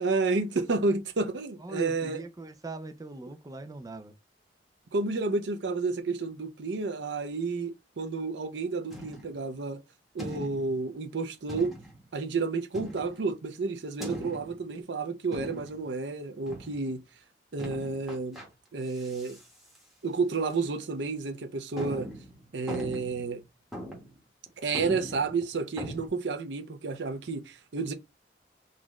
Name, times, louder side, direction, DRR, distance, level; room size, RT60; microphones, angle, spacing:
voice 1, 0.0-2.2 4.9-9.8 10.1-11.8 12.1-17.0 17.5-18.4 18.7-19.4 20.0-22.1 22.5-23.4 24.6-27.9, right 3 dB, 85° right, 0.6 m, -31 dB
voice 2, 1.6-4.1, right 2 dB, 20° right, 0.4 m, -40 dB
sound 1, 8.9-9.4 10.2-10.8 11.5-12.1 12.7-13.3 14.0-14.7 15.3-15.9 16.5-16.9 17.6-18.5 18.9-19.5 19.7-19.8 20.5-20.7 21.1-21.2 21.8-23.3 23.7-24.2 24.5-24.6 24.7-26.1, right 1 dB, ahead, 1.2 m, -40 dB
4.0 x 2.4 x 3.0 m
head